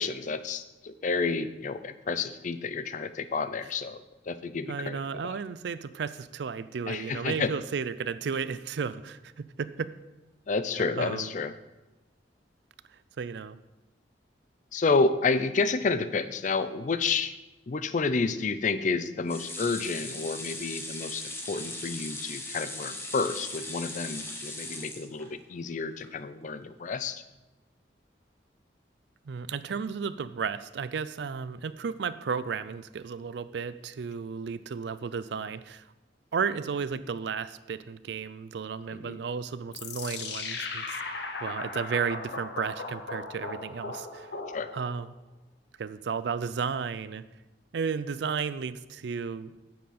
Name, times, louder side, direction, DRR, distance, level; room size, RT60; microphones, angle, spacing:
voice 1, 0.0-5.4 6.9-7.5 10.5-11.5 14.7-17.3 17.7-27.2 38.9-39.2 44.5-44.7, left 4 dB, 45° left, 12 dB, 0.4 m, -30 dB
voice 2, 4.7-9.9 11.0-11.3 13.2-13.6 29.3-35.8 36.3-41.0 41.4-44.3 44.7-45.2 45.8-47.2 47.7-49.5, right 6 dB, 70° right, 15 dB, 0.4 m, -33 dB
sound 1, 19.3-25.6 26.0-26.1 26.4-26.5, left 2 dB, 15° left, 1.1 m, -39 dB
sound 2, 39.7-45.0, left 3 dB, 65° left, 0.9 m, -37 dB
9.2 x 7.6 x 4.2 m, 1.1 s
head